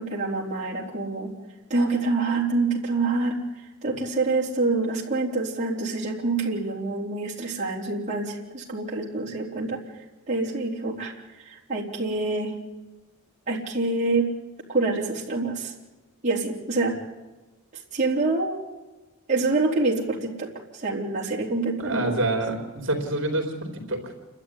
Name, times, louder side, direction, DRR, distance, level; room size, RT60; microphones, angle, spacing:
voice 1, 0.0-1.3 1.7-3.4 3.8-12.5 13.5-14.3 14.7-15.7 16.2-16.9 17.9-18.6 19.3-22.3, right 3 dB, 30° right, -4 dB, 3.9 m, -26 dB
voice 2, 21.8-23.5 23.9-24.1, right 2 dB, 55° right, 3 dB, 4.0 m, -26 dB
29.0 x 12.5 x 9.9 m, 1.1 s
head